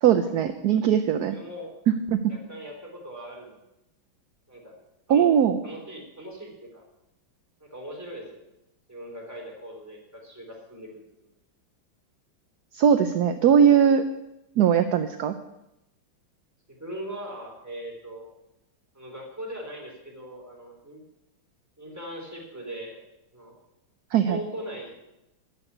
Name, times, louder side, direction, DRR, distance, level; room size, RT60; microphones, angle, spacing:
voice 1, 0.0-1.4 1.9-2.2 5.1-5.6 12.7-14.0 14.6-15.3 24.1-24.4, right 8 dB, 65° right, 9 dB, 1.0 m, -20 dB
voice 2, 1.2-1.7 2.3-3.6 4.5-4.8 5.1-5.3 5.6-6.8 7.6-8.4 8.9-10.9 16.7-18.3 18.9-21.0 21.8-23.0 23.3-23.6 24.3-24.9, right 1 dB, 5° right, -1 dB, 3.6 m, -39 dB
13.5 x 6.2 x 9.8 m, 0.89 s
omnidirectional pair, 2.3 m